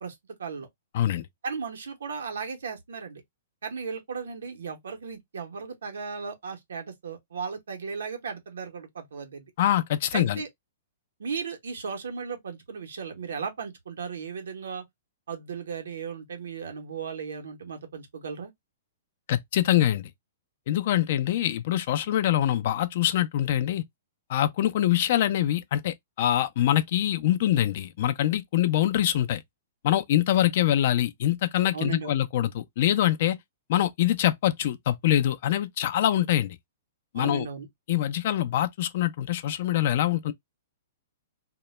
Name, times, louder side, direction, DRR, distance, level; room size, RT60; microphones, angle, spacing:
voice 1, 1.4-3.2 3.6-9.5 10.1-10.5 11.2-14.8 15.3-18.5 31.7-32.1 37.1-37.7, right 5 dB, 85° right, 0.7 m, -36 dB
voice 2, 9.6-10.4 19.3-20.1 20.7-23.8 24.3-29.4 29.8-33.4 33.7-36.6 37.1-37.5 37.9-40.3, left 12 dB, 55° left, 0.4 m, -24 dB
2.1 x 2.0 x 3.0 m
hypercardioid pair, 140°, 0 cm